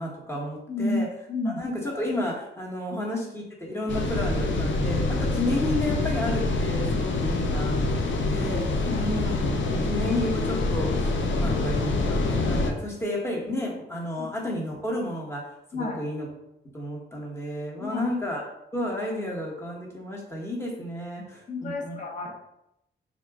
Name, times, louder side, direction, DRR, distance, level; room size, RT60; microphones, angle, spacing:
voice 1, 0.0-1.1 1.4-11.9 12.5-16.3 16.7-18.4 18.7-22.0, left 1 dB, 15° left, -3 dB, 1.1 m, -32 dB
voice 2, 0.7-1.6 7.1-7.2 8.8-9.0 11.4-11.5 12.9-13.0 14.2-14.3 15.7-16.0 17.8-18.0 21.5-22.3, left 2 dB, 40° left, -1 dB, 0.9 m, -31 dB
sound 1, 3.9-12.7, left 2 dB, 70° left, 0.5 m, -26 dB
3.9 x 2.3 x 3.5 m, 0.84 s
cardioid pair, 100°, 20 cm